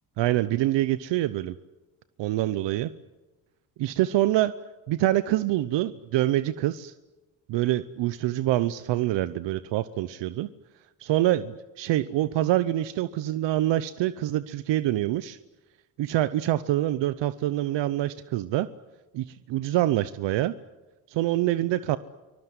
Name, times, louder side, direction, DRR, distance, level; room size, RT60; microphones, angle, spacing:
voice 1, 0.2-1.5 2.2-2.9 3.8-4.5 4.9-6.9 7.5-10.5 11.0-15.4 16.0-18.7 19.1-20.5 21.1-22.0, right 14 dB, 80° right, 15 dB, 0.8 m, -25 dB
24.5 x 21.0 x 9.7 m, 1.1 s
cardioid pair, 120°, 43 cm